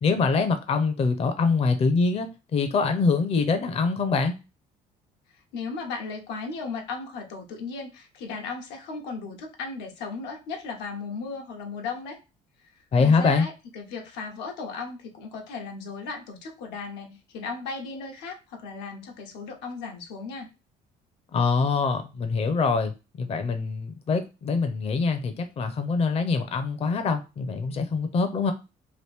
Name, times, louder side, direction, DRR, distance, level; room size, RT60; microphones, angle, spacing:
voice 1, 0.0-4.4 12.9-13.5 21.3-28.5, left 4 dB, 35° left, 7 dB, 0.5 m, -24 dB
voice 2, 5.5-12.2 13.0-20.5, left 4 dB, 90° left, 3 dB, 0.9 m, -36 dB
3.0 x 2.5 x 3.3 m, 0.28 s
cardioid pair, 110°, 17 cm